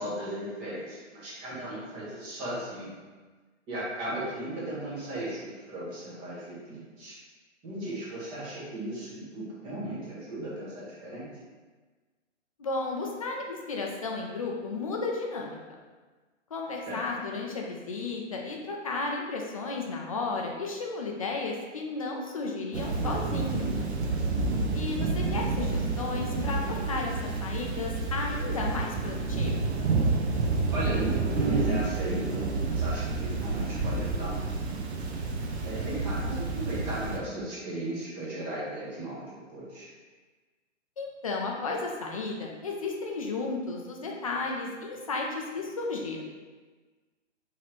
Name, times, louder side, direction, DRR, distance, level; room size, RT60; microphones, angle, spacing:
voice 1, 0.0-3.0 3.7-7.2 7.6-11.3 16.9-17.0 30.7-34.5 35.6-39.9, right 1 dB, 15° right, -7 dB, 0.7 m, -36 dB
voice 2, 12.6-15.6 16.5-23.7 24.7-29.7 41.0-46.2, left 3 dB, 30° left, 0 dB, 0.4 m, -33 dB
Thunder / Rain, 22.7-37.2, right 3 dB, 60° right, 0.7 m, -29 dB
4.1 x 3.1 x 3.0 m, 1.3 s
hypercardioid pair, 150°, 38 cm